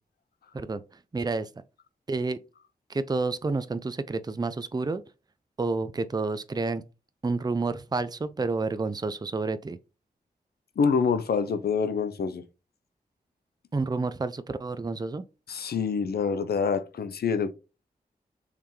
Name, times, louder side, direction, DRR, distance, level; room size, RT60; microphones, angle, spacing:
voice 1, 1.1-1.5 2.1-2.4 2.9-5.0 5.6-6.8 7.2-9.8 13.7-15.2, right 3 dB, 25° right, 0.5 m, -29 dB
voice 2, 10.8-12.4 15.5-17.5, left 5 dB, 75° left, 0.7 m, -26 dB
4.8 x 3.5 x 3.1 m
cardioid pair, 45°, 16 cm